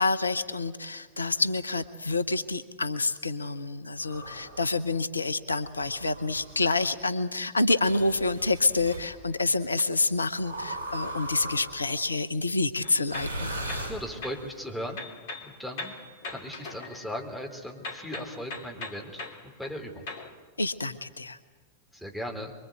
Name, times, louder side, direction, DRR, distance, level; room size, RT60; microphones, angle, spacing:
voice 1, 0.0-13.5 20.6-21.4, left 3 dB, 80° left, 13 dB, 0.8 m, -28 dB
sound 1, 4.0-4.7 5.6-6.8 7.8-9.1 10.4-11.9 13.0-14.4, right 1 dB, 65° right, 6.2 m, -38 dB
sound 2, 12.8-14.5 14.9-17.5 17.8-20.3, left 3 dB, 55° left, 3.0 m, -41 dB
voice 2, 13.9-15.0 15.4-15.9 16.3-20.0 21.9-22.5, equal, ahead, 1 dB, 4.2 m, -37 dB
24.5 x 23.5 x 8.3 m, 1.4 s
figure-of-eight pair, 90°, 0 cm